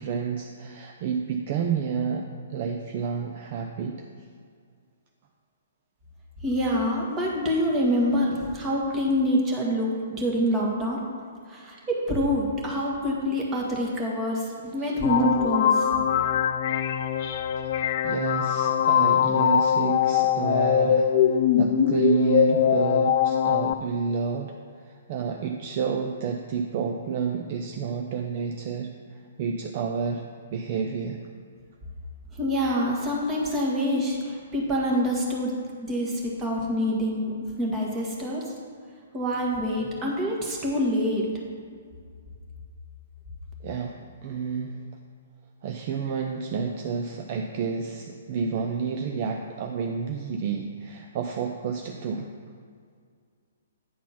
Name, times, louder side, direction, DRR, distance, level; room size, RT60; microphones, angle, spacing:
voice 1, 0.0-4.0 14.8-14.9 18.0-30.2 30.5-31.2 43.6-44.8 45.6-52.3, right 6 dB, 40° right, 3 dB, 0.5 m, -30 dB
voice 2, 6.4-11.0 11.5-15.9 32.3-35.5 35.8-38.4 39.1-41.3, equal, 20° right, -2 dB, 1.6 m, -26 dB
sound 1, 15.0-23.7, left 9 dB, 45° left, 0.3 m, -22 dB
9.3 x 4.1 x 5.8 m, 2.1 s
figure-of-eight pair, 120°, 0 cm